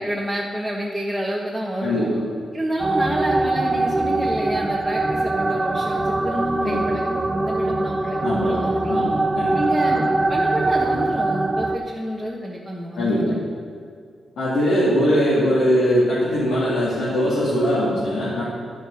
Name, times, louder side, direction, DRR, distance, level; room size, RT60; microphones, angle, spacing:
voice 1, 0.0-2.1 2.5-9.0 9.5-13.4, equal, 5° left, -4 dB, 1.3 m, -29 dB
voice 2, 1.8-2.2 6.6-6.8 8.2-9.6 12.9-13.3 14.4-18.4, equal, 85° left, -10 dB, 2.8 m, -21 dB
sound 1, 2.8-11.8, right 2 dB, 20° right, 0.6 m, -22 dB
11.5 x 6.0 x 5.6 m, 2.2 s
cardioid pair, 105°, 0 cm